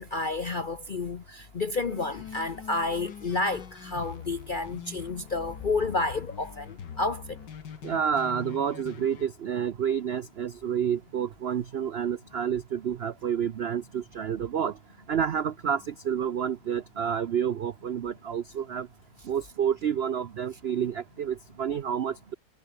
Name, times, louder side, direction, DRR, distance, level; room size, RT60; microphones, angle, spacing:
voice 1, 0.0-7.4, left 3 dB, 50° left, 0.6 m, -30 dB
sound 1, 1.9-9.3, left 7 dB, 75° left, 2.2 m, -44 dB
voice 2, 7.8-14.8 15.1-18.9 19.2-22.3, right 8 dB, 70° right, 0.6 m, -29 dB
omnidirectional pair, 1.9 m